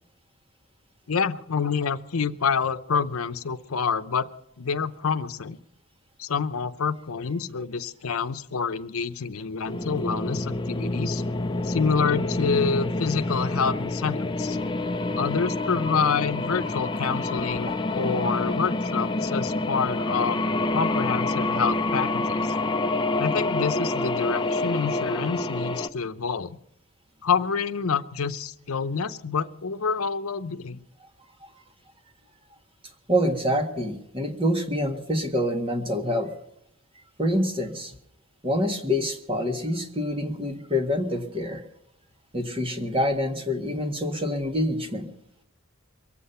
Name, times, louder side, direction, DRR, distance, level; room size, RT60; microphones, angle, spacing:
voice 1, 1.1-4.3 4.6-5.6 6.2-11.2 11.6-14.6 15.1-20.4 20.7-22.5 23.2-26.6 27.2-30.8, left 5 dB, 90° left, 10 dB, 0.7 m, -27 dB
sound 1, 9.7-25.9, left 2 dB, 20° left, 0.6 m, -27 dB
voice 2, 33.1-36.3 37.2-37.9 38.4-41.6 42.3-45.1, equal, 25° right, 4 dB, 1.6 m, -26 dB
23.0 x 8.5 x 5.7 m, 0.76 s
head